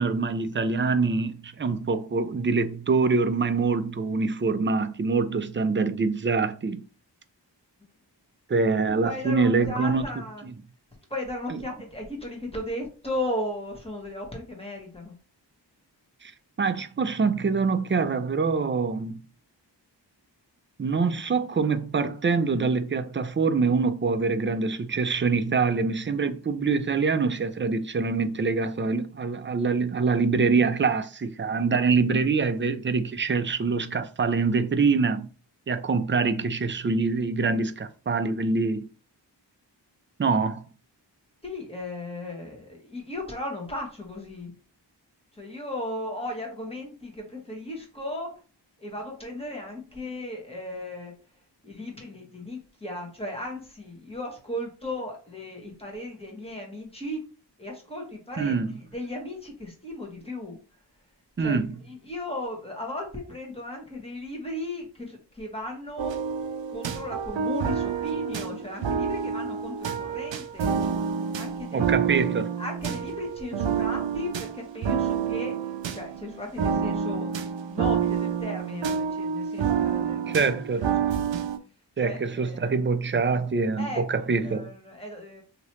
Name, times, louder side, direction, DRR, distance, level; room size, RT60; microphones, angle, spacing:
voice 1, 0.0-6.9 8.5-10.1 10.4-10.5 11.5-11.6 16.2-16.3 16.6-19.2 20.8-35.3 35.7-38.9 40.2-40.6 58.4-58.8 61.4-61.7 71.7-72.5 80.3-80.9 82.0-84.7, right 4 dB, 30° right, 0.4 m, -25 dB
voice 2, 8.9-10.4 11.1-15.1 41.4-44.5 45.3-48.4 48.8-51.1 51.6-57.3 57.6-58.6 58.9-60.6 61.4-61.6 61.9-66.1 66.7-70.8 71.4-72.3 72.6-77.4 77.7-80.4 80.8-81.2 82.0-82.7 83.8-85.4, left 1 dB, 15° left, 1.3 m, -36 dB
sound 1, 66.0-81.6, right 7 dB, 85° right, 0.5 m, -28 dB
3.0 x 2.9 x 3.0 m
wide cardioid pair, 40°, 44 cm